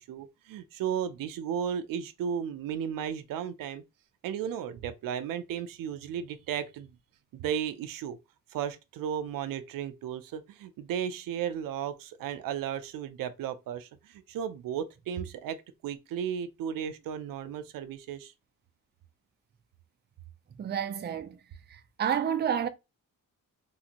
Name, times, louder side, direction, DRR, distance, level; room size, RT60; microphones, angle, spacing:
voice 1, 0.0-3.8 4.2-6.9 7.3-8.2 8.5-18.3, right 8 dB, 90° right, 0.5 m, -34 dB
voice 2, 20.6-21.4 21.7-22.7, right 8 dB, 30° right, 0.4 m, -30 dB
3.1 x 2.5 x 2.8 m
cardioid pair, 100°, 32 cm